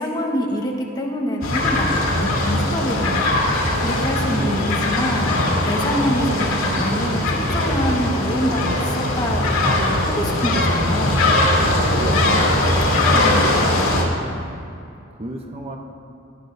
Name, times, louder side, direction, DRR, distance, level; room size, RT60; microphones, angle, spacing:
voice 1, 0.0-3.4 3.8-11.2 13.1-13.5, equal, 20° left, -1 dB, 1.2 m, -26 dB
sound 1, 1.4-14.0, left 1 dB, 80° left, 2.3 m, -20 dB
voice 2, 11.5-12.9 14.1-14.6 15.1-15.8, right 1 dB, 30° right, 3 dB, 0.6 m, -34 dB
17.5 x 11.5 x 2.6 m, 2.5 s
head